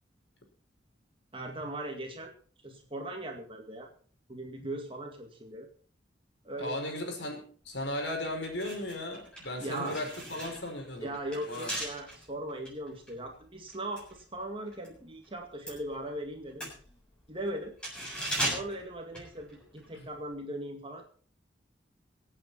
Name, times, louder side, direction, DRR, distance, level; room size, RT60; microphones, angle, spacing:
voice 1, 1.3-2.3 2.6-3.9 4.3-5.7 6.4-6.9 9.6-10.0 11.0-16.6 17.3-17.7 18.4-21.0, right 1 dB, 30° right, 3 dB, 2.1 m, -39 dB
voice 2, 6.6-11.1 11.5-11.8 19.9-20.1, left 1 dB, 75° left, 3 dB, 5.1 m, -36 dB
sound 1, 8.3-15.0 15.2-19.9 20.2-20.3, right 1 dB, 5° left, 7.0 m, -39 dB
24.0 x 8.8 x 4.3 m, 0.43 s
head